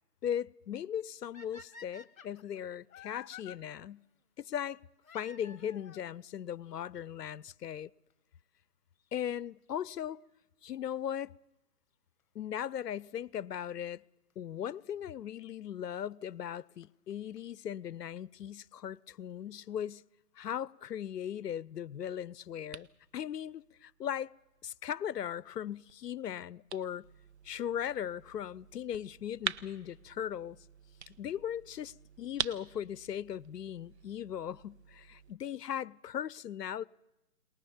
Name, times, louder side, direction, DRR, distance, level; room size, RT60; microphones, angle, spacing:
voice 1, 0.2-4.0 4.4-4.8 5.1-7.9 9.1-10.2 10.6-11.3 12.3-14.0 14.4-20.0 20.3-22.9 23.1-24.3 24.6-27.1 27.4-30.6 31.1-36.8, left 9 dB, 85° left, 0.7 m, -38 dB
sound 1, 1.3-3.6 5.0-6.1 7.0-7.1 7.8-7.9 8.1-8.2 10.1-10.3 13.2-13.3 14.3-14.4 15.8-15.9 16.2-16.3 16.5-16.6 16.8-16.9 17.1-17.2 17.4-17.5 17.7-17.8, left 6 dB, 60° left, 1.5 m, -51 dB
sound 2, 21.9-35.3, right 8 dB, 45° right, 0.7 m, -46 dB
23.0 x 19.5 x 7.2 m
hypercardioid pair, 160°, 47 cm